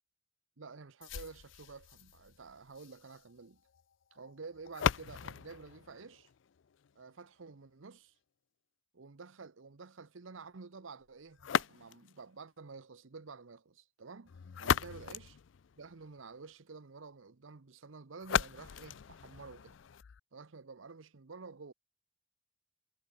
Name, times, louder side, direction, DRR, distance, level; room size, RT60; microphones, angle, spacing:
voice 1, 0.6-3.6 4.1-6.3 6.9-8.1 8.9-14.3 14.6-15.4 15.8-19.8 20.3-21.7, right 4 dB, 90° right, 0.8 m, -50 dB
sound 1, 1.0-7.0 11.4-12.2 14.3-16.2 18.2-20.2, left 8 dB, 80° left, 0.4 m, -37 dB
head